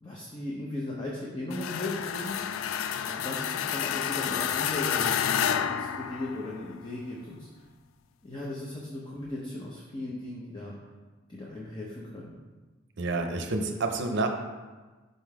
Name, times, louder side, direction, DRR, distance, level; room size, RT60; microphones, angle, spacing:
voice 1, 0.0-2.4 3.1-7.5 8.2-10.7 11.3-12.3, left 2 dB, 25° left, -4 dB, 0.7 m, -37 dB
sound 1, 1.5-6.7, left 8 dB, 80° left, 0.3 m, -30 dB
voice 2, 13.0-14.3, right 3 dB, 60° right, 5 dB, 0.6 m, -28 dB
5.4 x 3.7 x 4.7 m, 1.3 s
head